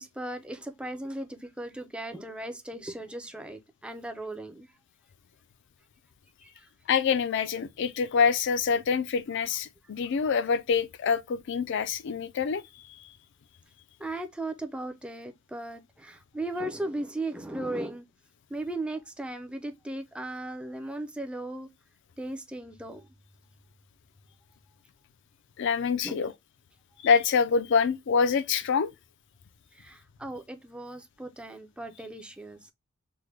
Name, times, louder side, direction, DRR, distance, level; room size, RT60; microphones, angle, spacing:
voice 1, 0.0-4.7 6.4-6.7 14.0-18.1 18.5-21.7 22.2-23.1 26.0-26.2 29.7-32.7, right 1 dB, 5° right, 0.4 m, -37 dB
voice 2, 6.9-12.6 12.9-13.0 25.6-26.3 27.0-28.9, left 6 dB, 60° left, 0.4 m, -26 dB
3.5 x 2.1 x 3.1 m
head